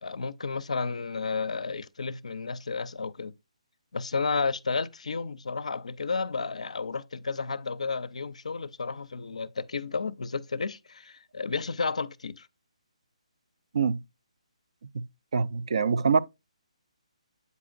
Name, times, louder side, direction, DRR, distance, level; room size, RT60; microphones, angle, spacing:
voice 1, 0.0-3.3 3.9-12.5, left 4 dB, 70° left, 0.4 m, -32 dB
voice 2, 15.3-16.2, right 5 dB, 60° right, 0.4 m, -24 dB
8.2 x 4.9 x 2.5 m
figure-of-eight pair, 140°, 4 cm